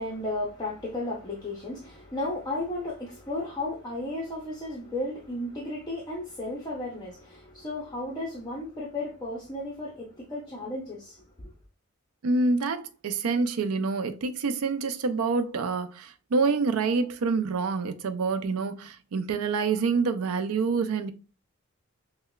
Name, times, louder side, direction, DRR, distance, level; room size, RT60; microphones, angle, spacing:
voice 1, 0.0-11.2, left 2 dB, 20° left, 0.6 m, -34 dB
voice 2, 12.2-21.1, right 4 dB, 85° right, 0.5 m, -27 dB
5.5 x 2.1 x 2.3 m
head